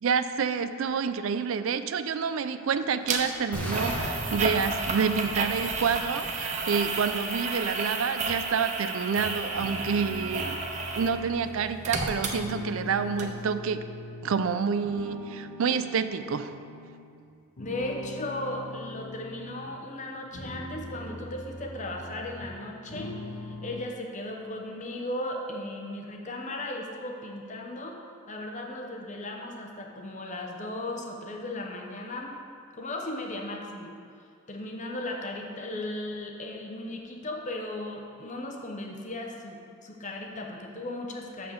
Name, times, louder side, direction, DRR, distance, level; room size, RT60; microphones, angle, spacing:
voice 1, 0.0-10.6 11.0-13.8 14.2-16.6, right 6 dB, 70° right, 11 dB, 0.4 m, -28 dB
sound 1, 3.1-3.2 3.7-11.2 11.5-12.9 13.2-13.3, right 3 dB, 35° right, 0.7 m, -32 dB
sound 2, 3.5-7.5, equal, 5° left, 1.0 m, -37 dB
sound 3, 9.5-14.4 14.8-17.1 17.6-19.7 20.2-22.6 22.9-23.8, left 2 dB, 70° left, 1.3 m, -41 dB
voice 2, 17.6-28.0 28.3-32.4 32.7-33.9 34.5-41.5, left 1 dB, 35° left, 1 dB, 0.8 m, -36 dB
6.9 x 5.8 x 6.5 m, 2.3 s
head